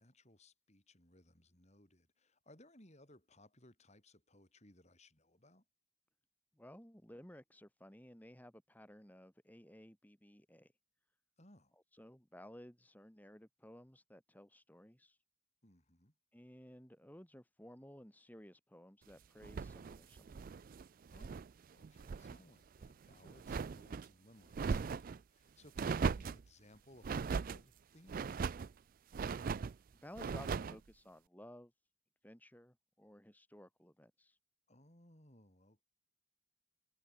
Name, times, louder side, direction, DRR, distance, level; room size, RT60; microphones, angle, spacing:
voice 1, 0.0-5.7 11.4-11.7 15.6-16.1 21.1-28.2 34.7-35.8, left 1 dB, 35° left, 6.9 m, -63 dB
voice 2, 6.6-10.7 11.9-15.2 16.3-20.4 30.0-31.7 32.2-34.4, equal, 10° left, 2.4 m, -56 dB
sound 1, 19.4-21.5 21.8-22.4 22.8-24.1 24.5-25.2 25.8-26.4 27.0-27.6 28.1-28.7 29.1-29.8 30.2-30.8, right 5 dB, 40° right, 0.3 m, -39 dB
head